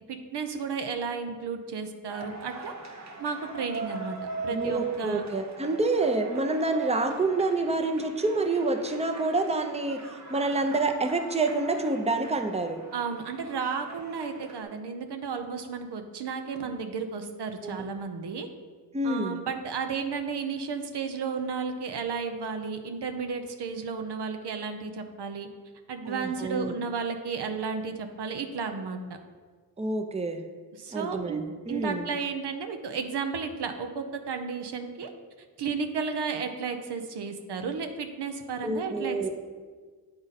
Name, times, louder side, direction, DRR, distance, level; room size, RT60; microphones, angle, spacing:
voice 1, 0.1-2.7 3.2-5.3 12.9-18.5 19.0-25.5 25.9-29.0 30.8-31.4 31.7-35.1 35.6-39.3, right 5 dB, 75° right, 6 dB, 0.7 m, -33 dB
sound 1, 2.1-14.6, right 3 dB, 45° right, 0.9 m, -42 dB
voice 2, 4.5-12.8 17.6-17.9 18.9-19.4 26.1-26.7 29.8-30.4 30.9-32.1 38.6-39.3, right 2 dB, 15° right, 5 dB, 0.6 m, -28 dB
8.8 x 3.8 x 4.1 m, 1.5 s
cardioid pair, 55°, 41 cm